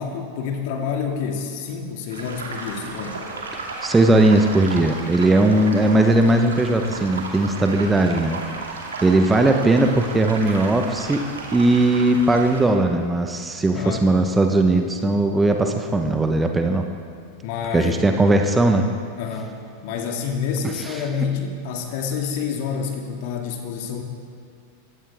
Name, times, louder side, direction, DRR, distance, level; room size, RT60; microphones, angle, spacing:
voice 1, 0.0-3.2 13.7-14.1 17.4-17.9 19.2-19.5 19.8-24.0, left 6 dB, 50° left, 3 dB, 2.3 m, -28 dB
sound 1, 2.1-12.6, right 3 dB, 70° right, 2.6 m, -34 dB
voice 2, 3.8-8.4 9.0-11.2 11.5-16.8 17.7-18.9, right 2 dB, 10° right, 4 dB, 1.1 m, -18 dB
23.0 x 16.5 x 3.6 m, 2.4 s
figure-of-eight pair, 90°, 0 cm